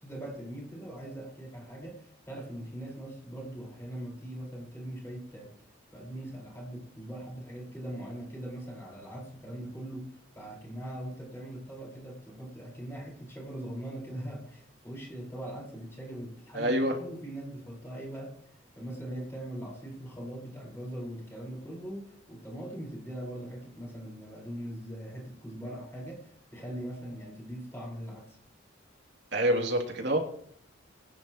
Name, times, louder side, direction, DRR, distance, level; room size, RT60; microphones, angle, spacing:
voice 1, 0.0-5.5 5.9-18.3 18.7-28.4, right 1 dB, 10° left, -2 dB, 4.9 m, -41 dB
voice 2, 16.5-16.9 29.3-30.2, right 1 dB, 60° right, 1 dB, 2.9 m, -26 dB
22.0 x 10.0 x 3.1 m, 0.63 s
head